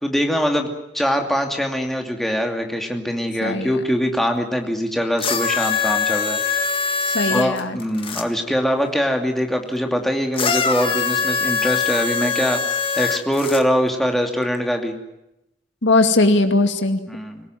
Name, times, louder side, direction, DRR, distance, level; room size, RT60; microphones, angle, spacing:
voice 1, 0.0-6.4 7.3-14.9 17.1-17.5, equal, ahead, 3 dB, 2.6 m, -23 dB
voice 2, 3.4-3.8 7.1-7.8 15.8-17.0, left 2 dB, 80° left, 7 dB, 2.4 m, -19 dB
sound 1, 5.2-8.2 10.3-13.6 14.5-14.6, left 6 dB, 30° left, 1.7 m, -22 dB
26.0 x 17.5 x 9.2 m, 0.89 s
head